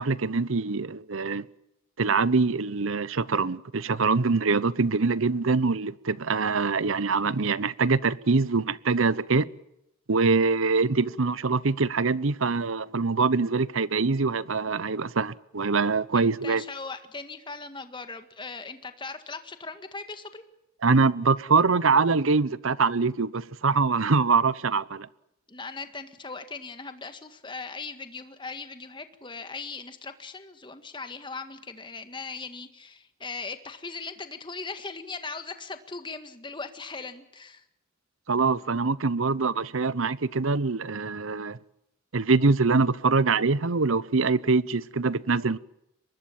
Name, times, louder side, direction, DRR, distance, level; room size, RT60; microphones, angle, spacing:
voice 1, 0.0-1.4 2.0-9.5 10.1-16.6 20.8-25.1 38.3-41.6 42.1-45.6, right 4 dB, 75° right, 0.8 m, -24 dB
voice 2, 16.1-20.5 25.5-37.6, left 4 dB, 25° left, 1.8 m, -39 dB
24.0 x 20.5 x 7.3 m
head